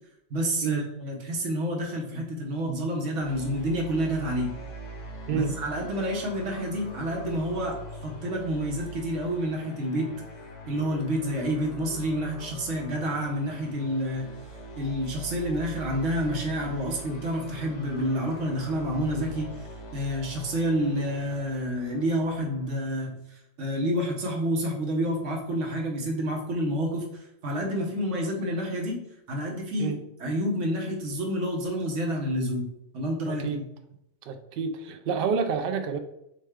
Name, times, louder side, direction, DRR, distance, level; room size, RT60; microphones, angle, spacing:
voice 1, 0.3-4.5 5.3-10.1 10.7-14.3 14.8-19.7 19.9-29.0 29.3-29.9 30.2-32.7 32.9-33.7, equal, 80° right, 0 dB, 1.3 m, -29 dB
sound 1, 3.2-22.7, right 1 dB, 85° left, 1.2 m, -43 dB
voice 2, 5.3-5.6 29.8-30.0 33.3-33.6 34.3-36.0, right 6 dB, 60° right, 8 dB, 0.6 m, -29 dB
6.2 x 2.2 x 3.5 m, 0.81 s
omnidirectional pair, 1.2 m